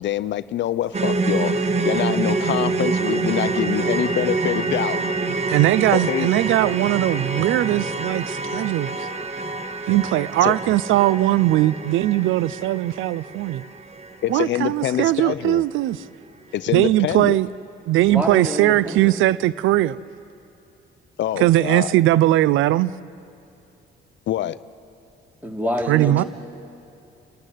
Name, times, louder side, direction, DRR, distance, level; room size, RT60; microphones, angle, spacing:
voice 1, 0.0-5.0 5.9-6.3 10.4-10.6 14.2-15.6 16.5-17.4 21.2-21.9 24.3-24.6, left 12 dB, 65° left, 16 dB, 0.5 m, -25 dB
sound 1, 0.9-15.1 15.4-15.6 16.0-16.1, right 3 dB, 35° right, 1.4 m, -26 dB
voice 2, 5.5-9.1 9.9-13.6 14.3-16.0 16.7-17.5 17.9-20.0 21.4-22.9 25.9-26.2, right 15 dB, 85° right, 19 dB, 0.4 m, -19 dB
voice 3, 18.1-19.2 25.4-26.2, equal, 10° right, 2 dB, 2.8 m, -27 dB
30.0 x 13.0 x 9.3 m, 2.6 s
cardioid pair, 90°, 20 cm